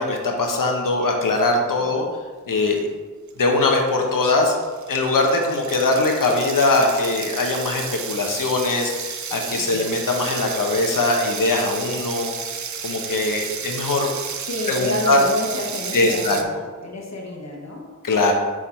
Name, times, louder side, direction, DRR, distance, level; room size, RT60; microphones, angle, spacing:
voice 1, 0.0-2.0 2.5-2.9 3.4-4.6 4.9-12.3 12.8-14.1 14.7-15.2 15.9-16.4 18.0-18.3, left 2 dB, 85° left, 2 dB, 1.0 m, -21 dB
sound 1, 3.3-3.4 3.7-16.4, right 6 dB, 60° right, 0.6 m, -32 dB
voice 2, 9.6-9.9 14.4-16.5 16.8-18.0, left 2 dB, 55° left, -1 dB, 1.2 m, -30 dB
6.5 x 3.7 x 4.3 m, 1.4 s
cardioid pair, 50°, 32 cm